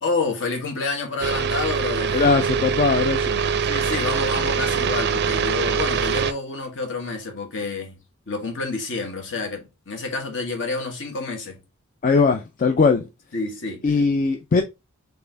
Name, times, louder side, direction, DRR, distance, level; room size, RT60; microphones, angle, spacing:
voice 1, 0.0-2.2 3.6-8.0 8.3-11.6 13.3-13.8, left 3 dB, 60° left, 1.3 m, -28 dB
sound 1, 1.2-6.3, right 6 dB, 50° right, 0.5 m, -23 dB
voice 2, 2.1-3.4 12.0-13.1 13.8-14.6, left 4 dB, 40° left, 0.4 m, -20 dB
4.1 x 3.4 x 3.8 m
head